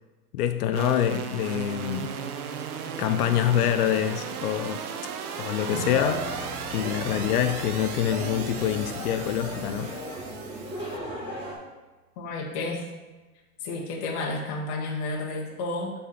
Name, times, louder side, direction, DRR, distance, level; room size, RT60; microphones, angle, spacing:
voice 1, 0.3-2.1 3.0-4.8 5.4-6.3 6.7-9.9, left 10 dB, 75° left, 8 dB, 0.6 m, -26 dB
sound 1, 0.7-11.0, right 7 dB, 70° right, 0.7 m, -36 dB
sound 2, 5.6-11.5, equal, 20° right, 1.8 m, -35 dB
Acoustic guitar / Strum, 5.7-10.9, right 3 dB, 40° right, 1.1 m, -44 dB
voice 2, 12.2-12.9 13.6-15.9, left 2 dB, 25° left, -1 dB, 0.8 m, -31 dB
5.5 x 3.8 x 5.7 m, 1.2 s
supercardioid pair, 170°, 46 cm